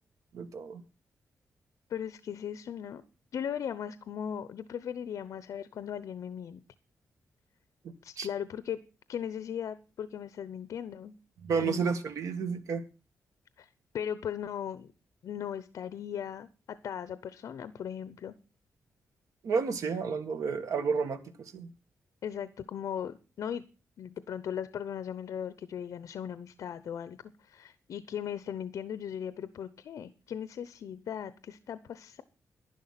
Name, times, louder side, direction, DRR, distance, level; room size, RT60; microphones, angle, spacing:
voice 1, 0.3-0.8 7.8-8.3 11.4-12.8 19.4-21.7, right 5 dB, 75° right, 8 dB, 1.9 m, -31 dB
voice 2, 1.9-3.0 3.3-6.6 8.0-8.8 9.1-11.1 11.6-11.9 13.6-13.7 13.9-14.9 15.2-18.4 20.8-20.9 22.2-23.6 24.0-32.2, left 8 dB, 75° left, 14 dB, 0.8 m, -38 dB
11.5 x 11.0 x 5.8 m, 0.33 s
wide cardioid pair, 155°, 6 cm